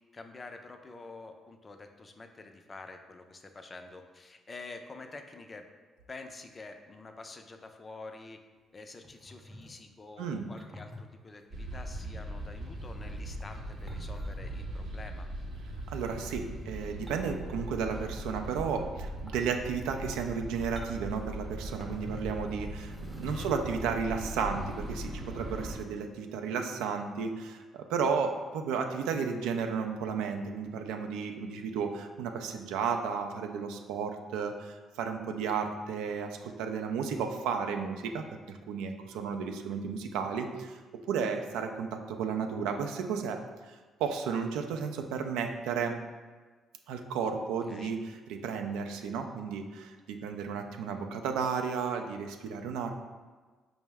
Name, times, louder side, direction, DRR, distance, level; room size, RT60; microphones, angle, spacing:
voice 1, 0.1-5.7 6.1-8.4 8.7-15.3 23.3-23.5 47.7-47.9, left 3 dB, 35° left, 6 dB, 0.4 m, -47 dB
sound 1, 9.0-9.8 10.6-11.0 11.9-12.1 12.7-14.8 15.9-16.5 17.1-17.4 17.7-18.2 18.6-18.7 19.2-19.5 20.0-20.4 20.8-21.2 21.8-22.4 22.9-23.8 24.7-24.9, left 1 dB, 20° right, 0.6 m, -48 dB
sound 2, 11.5-25.7, right 1 dB, 60° right, 0.8 m, -40 dB
voice 2, 15.9-43.7 44.0-46.0 46.9-48.0 48.3-52.9, right 6 dB, 80° right, 5 dB, 0.3 m, -33 dB
4.5 x 2.0 x 3.4 m, 1.4 s
hypercardioid pair, 55°, 0 cm